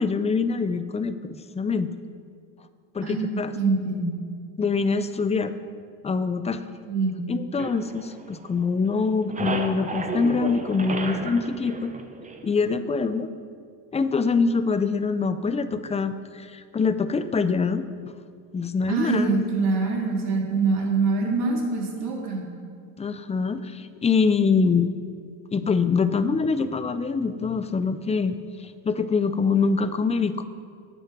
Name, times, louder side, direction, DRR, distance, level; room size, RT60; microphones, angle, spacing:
voice 1, 0.0-1.9 2.9-3.5 4.6-5.5 6.0-6.6 7.3-11.9 12.4-13.3 13.9-17.8 18.5-19.3 23.0-24.9 25.5-30.4, left 5 dB, 15° left, 12 dB, 0.4 m, -24 dB
voice 2, 3.0-4.1 6.9-7.2 18.9-22.4, right 3 dB, 65° right, -1 dB, 2.7 m, -24 dB
sound 1, 7.6-8.7 9.0-12.7, right 3 dB, 20° right, 0.8 m, -33 dB
9.0 x 8.0 x 6.0 m, 2.1 s
cardioid pair, 105°, 42 cm